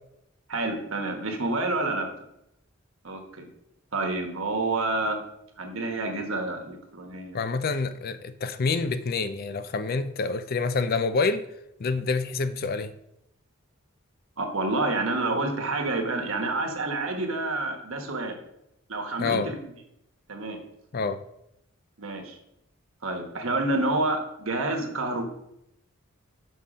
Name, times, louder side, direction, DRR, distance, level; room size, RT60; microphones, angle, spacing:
voice 1, 0.5-2.1 3.0-3.5 3.9-5.2 5.6-7.4 14.4-18.4 18.9-19.6 20.3-20.6 22.0-22.4 23.0-25.2, right 2 dB, 75° right, 3 dB, 1.3 m, -28 dB
voice 2, 7.3-11.4 11.8-12.9 19.2-19.5 20.9-21.2, left 4 dB, 45° left, 12 dB, 0.4 m, -27 dB
5.7 x 5.6 x 5.0 m, 0.81 s
head